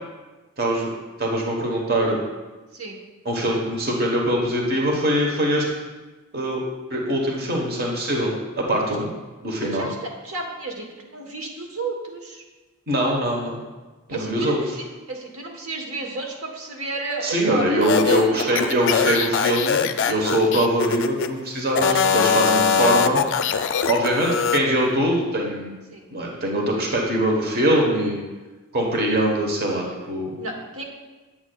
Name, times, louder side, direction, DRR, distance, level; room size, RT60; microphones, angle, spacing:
voice 1, 0.6-0.9 1.2-2.2 3.2-5.6 6.3-6.6 6.9-9.1 9.4-9.9 12.9-13.6 14.1-14.6 17.2-23.2 23.9-25.7 26.1-28.2 28.7-30.4, right 1 dB, 45° right, 0 dB, 1.1 m, -22 dB
voice 2, 9.6-12.4 14.1-19.7 22.4-23.7 24.1-24.5 25.9-26.1 30.4-30.8, right 3 dB, 70° right, 1 dB, 1.1 m, -33 dB
sound 1, 17.8-21.3 21.7-24.6, left 6 dB, 55° left, 0.3 m, -22 dB
8.7 x 8.2 x 2.3 m, 1.2 s
head